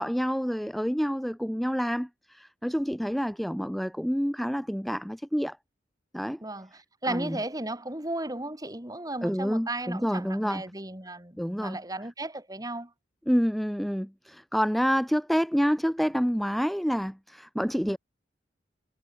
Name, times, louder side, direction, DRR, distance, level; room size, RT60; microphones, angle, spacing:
voice 1, 0.0-5.6 6.1-6.4 7.1-7.4 9.2-10.6 11.4-11.8 13.3-18.0, equal, ahead, 0.9 m, -28 dB
voice 2, 6.4-12.9, right 2 dB, 20° right, 2.9 m, -35 dB
head